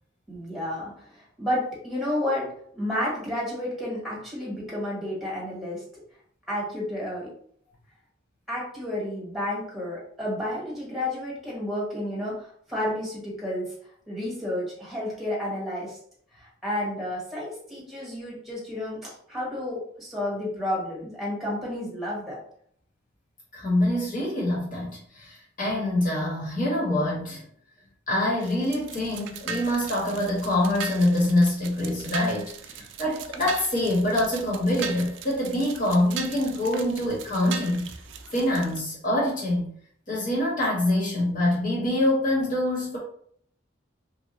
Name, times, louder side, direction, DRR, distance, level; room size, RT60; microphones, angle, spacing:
voice 1, 0.3-5.8 6.5-7.3 8.5-13.7 14.1-16.0 16.3-19.0 19.3-22.4, left 1 dB, ahead, -6 dB, 1.3 m, -31 dB
voice 2, 23.5-27.4 28.1-37.8 38.3-39.7 40.1-43.0, left 1 dB, 45° left, -4 dB, 1.3 m, -25 dB
sound 1, 28.4-38.8, right 6 dB, 70° right, 0.3 m, -39 dB
2.9 x 2.3 x 3.0 m, 0.63 s
head